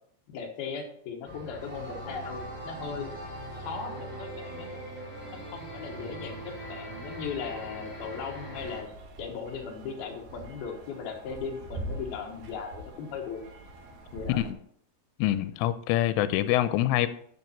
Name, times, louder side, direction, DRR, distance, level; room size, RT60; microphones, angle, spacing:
voice 1, 0.3-3.1 3.6-4.7 5.3-8.9 9.2-13.4 14.1-14.4, left 6 dB, 65° left, 2.7 m, -38 dB
sound 1, 1.2-8.8, right 1 dB, 5° right, 2.3 m, -40 dB
sound 2, 8.6-14.5, right 1 dB, 65° right, 2.8 m, -43 dB
voice 2, 15.2-17.1, left 13 dB, 90° left, 3.2 m, -25 dB
12.0 x 7.0 x 4.4 m
omnidirectional pair, 5.7 m